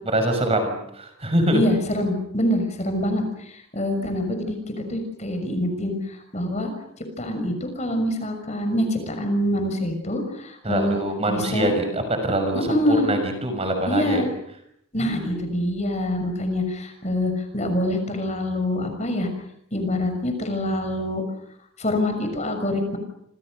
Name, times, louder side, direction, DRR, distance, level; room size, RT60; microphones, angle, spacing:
voice 1, 0.0-1.6 10.6-14.2 15.0-15.4, right 1 dB, 30° right, 6 dB, 6.3 m, -24 dB
voice 2, 1.5-6.7 7.2-11.0 11.3-11.7 12.7-13.1 13.9-14.3 14.9-19.3 19.7-21.2 21.8-23.0, left 1 dB, 30° left, 6 dB, 6.3 m, -25 dB
28.5 x 28.0 x 6.5 m, 0.73 s
head